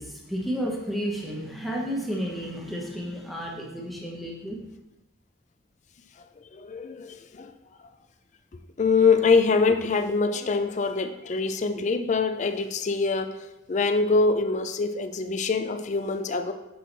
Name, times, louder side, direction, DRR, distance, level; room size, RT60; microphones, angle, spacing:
voice 1, 0.0-4.6, equal, ahead, -2 dB, 0.9 m, -32 dB
voice 2, 6.5-7.5 8.8-13.4 13.7-16.5, left 4 dB, 35° left, 7 dB, 0.4 m, -24 dB
6.2 x 4.6 x 4.0 m, 0.98 s
head